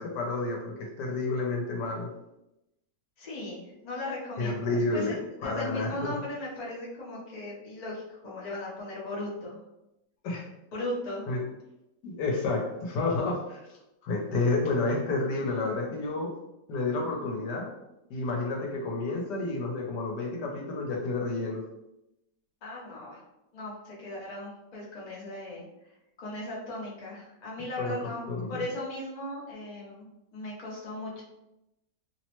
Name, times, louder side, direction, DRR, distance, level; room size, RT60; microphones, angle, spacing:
voice 1, 0.0-2.1 4.4-6.1 10.2-10.4 11.3-11.4 12.0-13.6 14.0-16.3 16.7-17.7 18.1-21.6 27.8-28.6, left 3 dB, 80° left, 0 dB, 1.2 m, -30 dB
voice 2, 3.2-9.6 10.7-11.3 22.6-23.2 23.5-25.7 26.2-28.2 28.5-31.2, left 1 dB, 50° left, -5 dB, 0.5 m, -37 dB
3.0 x 2.0 x 2.9 m, 0.90 s
omnidirectional pair, 1.9 m